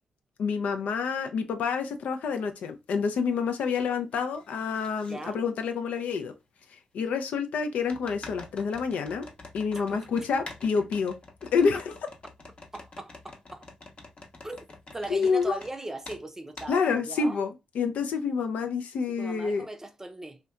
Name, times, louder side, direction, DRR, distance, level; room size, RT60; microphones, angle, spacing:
voice 1, 0.4-6.3 6.9-9.3 9.5-11.1 11.5-11.9 15.1-15.6 16.7-19.7, left 5 dB, 75° left, 0.4 m, -28 dB
sound 1, 2.4-2.5 3.0-3.9 4.1-5.1 6.1-6.2 7.9-15.7 16.0-16.2 16.6-16.7, left 3 dB, 45° left, 0.8 m, -47 dB
voice 2, 5.1-5.4 9.7-10.3 10.6-10.7 12.7-13.7 14.4-14.6 14.9-17.4 19.1-20.4, right 2 dB, 20° right, 0.5 m, -39 dB
2.7 x 2.2 x 2.3 m
supercardioid pair, 45°, 3 cm